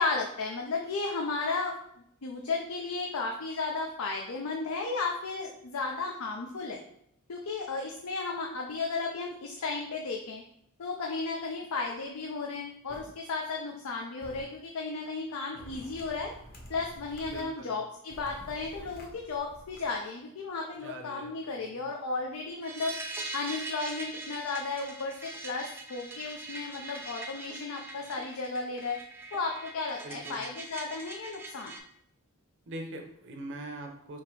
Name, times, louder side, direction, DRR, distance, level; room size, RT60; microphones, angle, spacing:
voice 1, 0.0-1.7 2.2-6.8 7.3-10.4 10.8-16.3 16.7-23.0 23.3-29.0 29.3-31.7, left 3 dB, 75° left, 0 dB, 0.5 m, -34 dB
sound 1, 12.9-13.0 14.2-14.4 15.6-17.4 18.1-19.8, equal, 45° left, 0.9 m, -48 dB
voice 2, 17.3-17.7 20.8-21.8 30.0-30.5 32.7-34.2, right 1 dB, 55° right, 3 dB, 0.7 m, -43 dB
sound 2, 22.6-31.8, right 2 dB, 10° right, 0.4 m, -42 dB
3.6 x 2.8 x 4.5 m, 0.73 s
head